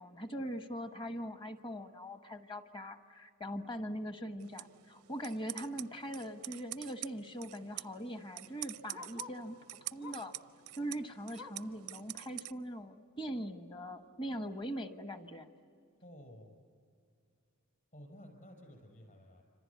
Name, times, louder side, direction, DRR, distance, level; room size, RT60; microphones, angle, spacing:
voice 1, 0.0-9.6 9.9-10.3 10.8-15.5, equal, 25° left, 8 dB, 1.2 m, -41 dB
sound 1, 4.4-12.5, right 16 dB, 90° right, 0.6 m, -47 dB
Bark, 6.8-9.5 10.0-10.4 10.8-11.8 12.2-12.3 12.7-12.8 13.5-13.6, left 4 dB, 70° left, 3.5 m, -52 dB
voice 2, 16.0-16.6 17.9-19.4, equal, 40° left, 3 dB, 5.7 m, -53 dB
27.5 x 26.0 x 8.3 m, 2.4 s
head